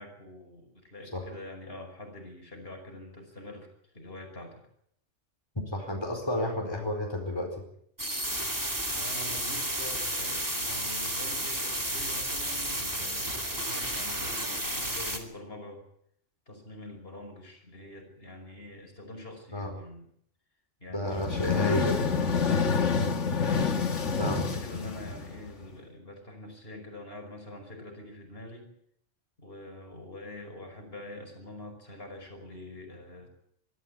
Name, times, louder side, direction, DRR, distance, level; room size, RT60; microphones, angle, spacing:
voice 1, 0.0-3.7 3.9-4.6 9.0-15.8 16.5-20.1 20.8-21.5 22.8-28.7 29.4-33.3, left 1 dB, 50° left, 3 dB, 5.5 m, -45 dB
voice 2, 5.7-7.6 19.5-19.7 20.9-22.0 24.2-24.5, left 1 dB, 20° left, 1 dB, 4.5 m, -31 dB
sound 1, 8.0-15.2, right 1 dB, 15° right, 2.7 m, -32 dB
sound 2, 21.1-25.6, left 5 dB, 75° left, 1.9 m, -28 dB
24.0 x 13.0 x 9.7 m, 0.70 s
omnidirectional pair, 1.2 m